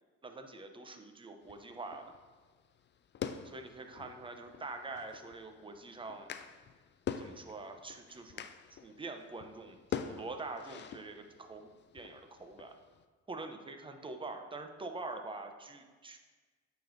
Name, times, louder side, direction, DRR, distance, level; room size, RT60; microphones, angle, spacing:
voice 1, 0.2-2.1 3.4-6.3 7.2-11.7 11.9-12.7 13.3-16.2, right 3 dB, 15° right, 6 dB, 0.6 m, -45 dB
sound 1, 1.4-13.0, left 8 dB, 40° left, 0.4 m, -46 dB
8.7 x 5.1 x 2.6 m, 1.4 s
cardioid pair, 90°, 30 cm